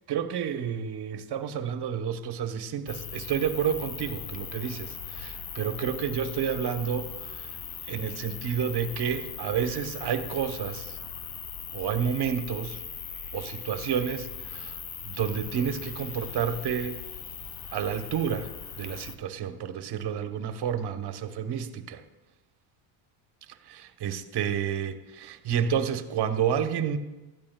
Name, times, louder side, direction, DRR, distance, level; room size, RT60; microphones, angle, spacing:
voice 1, 0.1-7.5 7.9-11.0 11.7-12.8 13.3-14.8 15.0-17.0 17.7-18.5 18.8-22.0 23.7-27.0, right 8 dB, 55° right, 8 dB, 1.1 m, -30 dB
sound 1, 2.9-19.2, left 7 dB, 35° left, 0.7 m, -39 dB
18.0 x 12.5 x 2.2 m, 1.1 s
cardioid pair, 95°, 48 cm